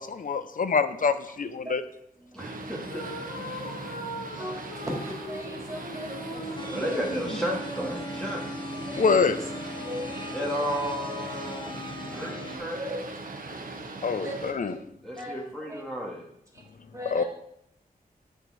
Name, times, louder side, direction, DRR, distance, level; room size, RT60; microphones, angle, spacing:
voice 1, 0.0-1.8 9.0-9.4 14.0-14.8 17.1-17.2, left 5 dB, 60° left, 11 dB, 0.8 m, -25 dB
voice 2, 2.3-3.0 3.5-3.6 6.7-8.6 10.3-12.8 15.0-16.3, equal, 5° left, -3 dB, 2.0 m, -33 dB
Boat Water vehicle, 2.4-14.5, right 2 dB, 65° right, 1.4 m, -39 dB
sound 1, 2.8-7.6, equal, 80° left, 1.8 m, -40 dB
voice 3, 4.4-7.0 8.9-9.1 9.7-10.6 12.1-12.4 12.8-13.1 14.0-14.8 15.2-15.4 15.7-15.8 16.5-16.7 16.9-17.2, equal, 20° right, -1 dB, 3.2 m, -38 dB
sound 2, 6.6-12.6, left 1 dB, 30° left, 1.1 m, -39 dB
8.9 x 6.5 x 4.9 m, 0.72 s
wide cardioid pair, 95°, 16 cm